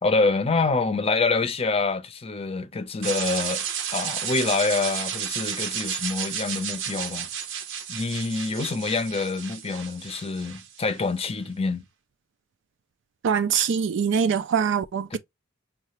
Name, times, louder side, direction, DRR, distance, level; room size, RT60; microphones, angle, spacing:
voice 1, 0.0-3.7 3.9-7.3 7.9-11.8 15.1-15.2, left 3 dB, 30° left, 0.6 m, -26 dB
sound 1, 3.0-11.0, right 8 dB, 85° right, 0.8 m, -32 dB
voice 2, 13.2-15.2, right 7 dB, 65° right, 0.4 m, -23 dB
5.6 x 2.4 x 3.0 m
head